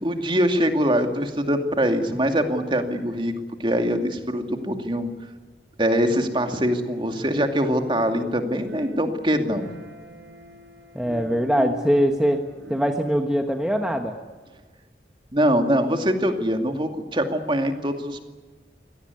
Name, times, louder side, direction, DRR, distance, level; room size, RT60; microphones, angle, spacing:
voice 1, 0.0-3.3 3.6-5.1 5.8-9.7 15.3-18.2, equal, 30° right, 5 dB, 2.4 m, -23 dB
sound 1, 6.2-7.6 7.8-13.1, equal, 90° right, 5.3 m, -40 dB
voice 2, 10.9-12.4 12.7-14.2, equal, 5° right, 3 dB, 1.3 m, -22 dB
24.5 x 18.0 x 9.7 m, 1.4 s
head